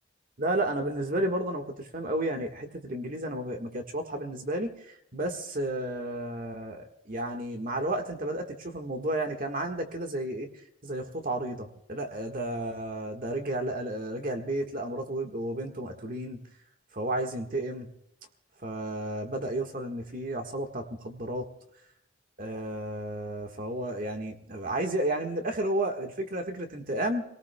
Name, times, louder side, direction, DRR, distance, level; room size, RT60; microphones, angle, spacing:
voice 1, 0.4-10.5 10.8-16.4 16.9-17.9 18.6-21.5 22.4-27.2, right 1 dB, 50° right, 3 dB, 1.6 m, -32 dB
28.5 x 18.5 x 2.3 m, 0.80 s
head